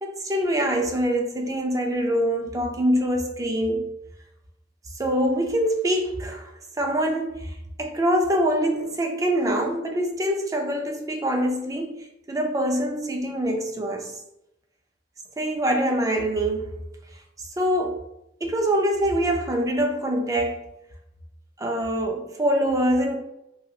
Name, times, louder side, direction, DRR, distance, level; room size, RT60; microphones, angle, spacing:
voice 1, 0.0-3.9 5.0-6.5 6.8-14.2 15.4-16.8 17.4-18.0 18.4-20.7 21.6-23.2, equal, 20° right, 0.4 m, -24 dB
2.7 x 2.4 x 2.7 m
head